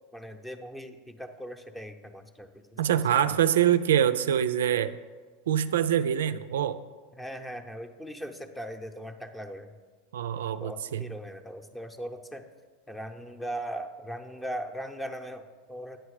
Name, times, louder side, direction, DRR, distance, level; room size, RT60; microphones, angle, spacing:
voice 1, 0.1-3.3 7.2-9.8 10.6-12.4 12.9-16.0, equal, 5° left, 7 dB, 0.7 m, -39 dB
voice 2, 2.8-5.0 5.5-6.8 10.1-11.0, right 10 dB, 85° right, 12 dB, 0.3 m, -25 dB
9.1 x 5.9 x 4.8 m, 1.4 s
hypercardioid pair, 115°, 0 cm